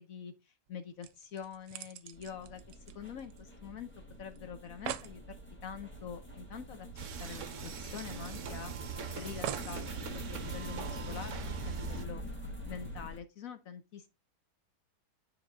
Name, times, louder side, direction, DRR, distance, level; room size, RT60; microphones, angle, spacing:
voice 1, 0.0-2.6 2.9-3.9 4.2-5.4 5.6-6.9 7.2-8.7 9.1-9.8 10.1-12.2 12.7-14.1, left 7 dB, 60° left, 0.9 m, -45 dB
sound 1, 0.7-0.8 1.0-3.7 3.9-4.0 4.4-4.5 4.6-5.2 6.7-6.8 7.1-7.2 7.8-8.8 9.4-9.8 10.6-10.7, right 10 dB, 75° right, 1.2 m, -43 dB
sound 2, 2.1-13.2, right 1 dB, 5° left, 1.2 m, -45 dB
sound 3, 7.0-12.1, right 5 dB, 60° right, 0.8 m, -41 dB
9.8 x 3.5 x 3.6 m
omnidirectional pair, 2.2 m